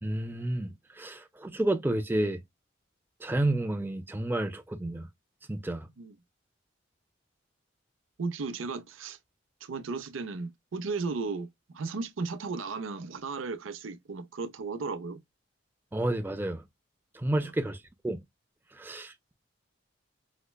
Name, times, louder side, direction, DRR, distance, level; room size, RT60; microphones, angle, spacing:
voice 1, 0.0-2.4 3.2-5.1 5.5-5.9 15.9-16.6 17.1-17.8 18.0-18.2 18.8-19.3, right 1 dB, 10° right, 0.3 m, -30 dB
voice 2, 8.2-9.2 9.6-15.2 17.3-17.5, right 4 dB, 85° right, 0.6 m, -35 dB
5.0 x 2.1 x 2.2 m
head